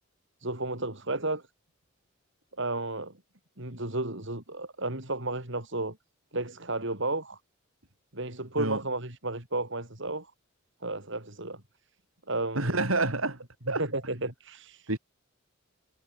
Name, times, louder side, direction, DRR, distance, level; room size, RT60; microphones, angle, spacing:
voice 1, 0.4-1.4 2.6-3.2 3.6-6.0 6.3-7.4 8.1-10.3 10.8-11.6 12.3-12.8 13.8-14.9, right 2 dB, 65° right, 6.6 m, -33 dB
voice 2, 12.5-13.4 13.7-13.8 14.9-15.0, right 2 dB, 85° right, 5.2 m, -27 dB
head